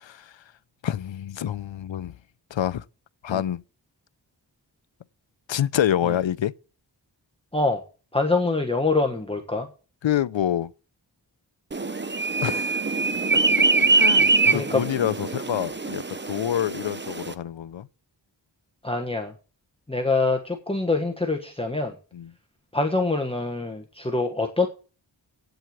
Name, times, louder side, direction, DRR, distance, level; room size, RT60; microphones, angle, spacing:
voice 1, 0.8-2.1 2.5-2.8 3.2-3.6 5.5-6.5 10.0-10.7 12.4-12.8 13.3-13.4 13.8-17.9 22.1-22.3, left 10 dB, 80° left, 0.7 m, -27 dB
voice 2, 8.1-9.7 13.6-13.7 14.5-14.9 18.8-19.3 19.9-21.9 22.7-24.7, left 3 dB, 10° left, 1.4 m, -25 dB
sound 1, 11.7-17.3, right 3 dB, 25° right, 0.8 m, -23 dB
8.9 x 7.9 x 7.8 m
wide cardioid pair, 85°, 45 cm